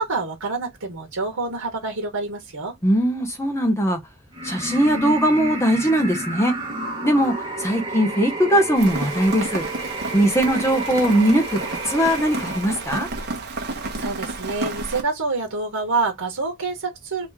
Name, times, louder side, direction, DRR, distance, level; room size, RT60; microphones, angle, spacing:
voice 1, 0.0-2.7 14.0-17.3, right 3 dB, 85° right, 1.2 m, -27 dB
voice 2, 2.8-4.0 4.4-6.5 7.0-7.3 7.6-9.6 10.1-11.6 11.9-13.1, equal, 15° left, 0.7 m, -20 dB
sound 1, 4.3-13.4, right 2 dB, 20° right, 1.4 m, -31 dB
Rain, 8.7-15.0, right 3 dB, 50° right, 1.1 m, -31 dB
3.0 x 2.9 x 3.5 m
head